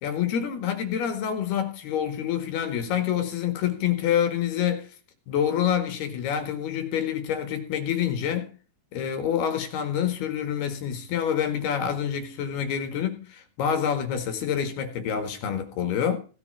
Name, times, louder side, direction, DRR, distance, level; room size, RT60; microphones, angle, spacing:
voice 1, 0.0-4.9 5.3-8.5 8.9-16.2, left 9 dB, 60° left, 3.5 m, -27 dB
17.5 x 6.9 x 5.6 m
omnidirectional pair, 5.5 m